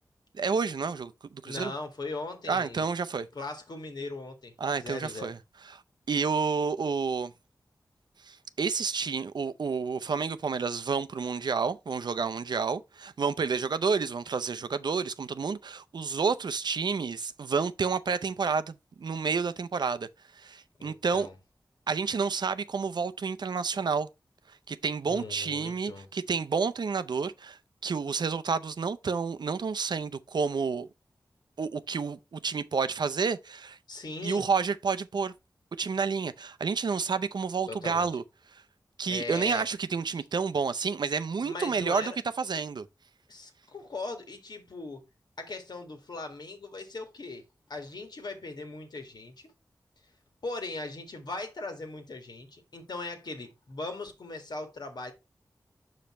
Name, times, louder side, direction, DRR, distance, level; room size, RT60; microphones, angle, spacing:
voice 1, 0.3-1.7 2.5-3.3 4.6-5.4 5.7-5.8 6.1-7.3 8.2-20.1 20.4-21.3 21.9-24.1 24.7-30.9 31.6-33.8 34.2-35.3 35.8-38.2 38.5-38.6 39.0-42.1 42.4-42.9, right 5 dB, 75° right, 0.5 m, -30 dB
voice 2, 1.4-2.9 3.3-5.3 20.8-21.4 25.1-26.1 33.9-34.5 37.7-38.1 39.1-39.6 41.4-42.2 43.3-45.1 45.4-47.4 47.7-49.5 50.4-55.1, left 3 dB, 70° left, 1.8 m, -39 dB
5.7 x 5.2 x 4.2 m
cardioid pair, 50°, 7 cm